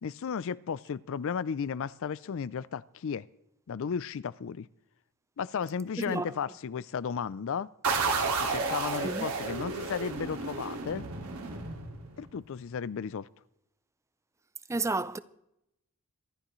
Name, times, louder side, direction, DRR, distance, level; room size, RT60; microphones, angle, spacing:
voice 1, 0.0-3.3 3.7-4.7 5.4-7.7 8.4-11.1 12.2-13.3, left 6 dB, 60° left, 0.4 m, -34 dB
voice 2, 6.0-6.4 9.0-9.3 14.7-15.2, right 3 dB, 15° right, 0.4 m, -31 dB
sound 1, 7.8-12.4, right 4 dB, 90° right, 2.2 m, -32 dB
25.0 x 11.5 x 3.1 m
head